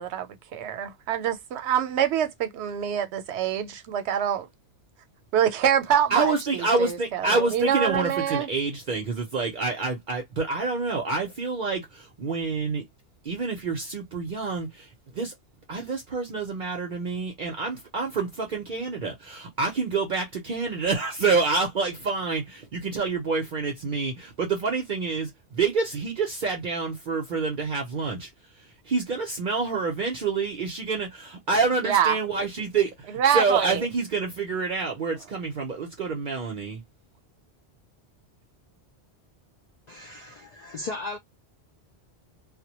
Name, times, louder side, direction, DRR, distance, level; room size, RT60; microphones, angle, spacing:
voice 1, 0.0-4.5 5.3-8.5 31.8-32.2 33.1-33.8, right 9 dB, 90° right, 0.9 m, -25 dB
voice 2, 6.1-12.8 13.2-15.3 15.7-28.3 28.6-36.8, right 4 dB, 55° right, 0.7 m, -27 dB
voice 3, 39.9-41.2, left 2 dB, 55° left, 0.5 m, -36 dB
2.1 x 2.1 x 2.7 m
omnidirectional pair, 1.1 m